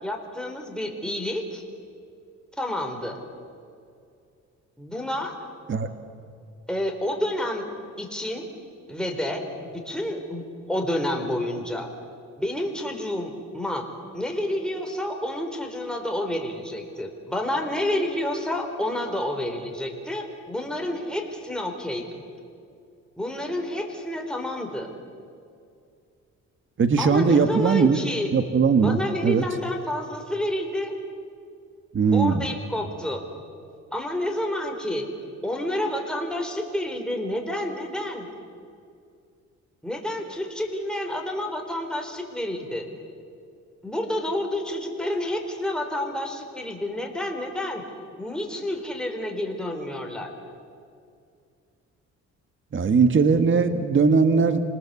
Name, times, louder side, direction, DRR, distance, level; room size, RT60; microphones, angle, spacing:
voice 1, 0.0-1.6 2.6-3.2 4.8-5.4 6.7-7.6 8.0-8.5 8.9-11.9 12.4-13.9 14.1-22.2 23.2-24.9 27.0-28.3 28.8-30.9 32.1-33.2 33.9-35.1 35.4-38.3 39.8-42.9 43.8-47.8 48.2-50.3, left 1 dB, 5° left, 2 dB, 4.2 m, -29 dB
voice 2, 26.8-28.0 28.3-29.4 31.9-32.4 52.7-54.6, right 5 dB, 40° right, 9 dB, 1.6 m, -20 dB
26.5 x 20.0 x 8.3 m, 2.4 s
cardioid pair, 90°, 30 cm